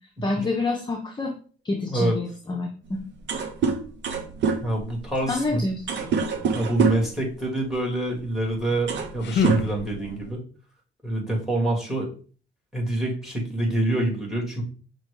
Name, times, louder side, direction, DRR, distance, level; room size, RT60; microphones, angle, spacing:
voice 1, 0.2-1.3 1.6-3.0 5.2-6.1, left 2 dB, 25° left, 0 dB, 0.7 m, -28 dB
sound 1, 2.9-3.0 3.2-7.2 8.2-8.3 8.7-9.2 9.4-10.3, right 5 dB, 60° right, 0.7 m, -26 dB
voice 2, 4.6-5.6 6.5-10.4 11.0-12.1 12.7-14.6, right 1 dB, ahead, 0 dB, 1.9 m, -26 dB
sound 2, 8.7-10.4, left 6 dB, 60° left, 0.6 m, -29 dB
5.7 x 2.3 x 3.3 m, 0.40 s
cardioid pair, 90°, 20 cm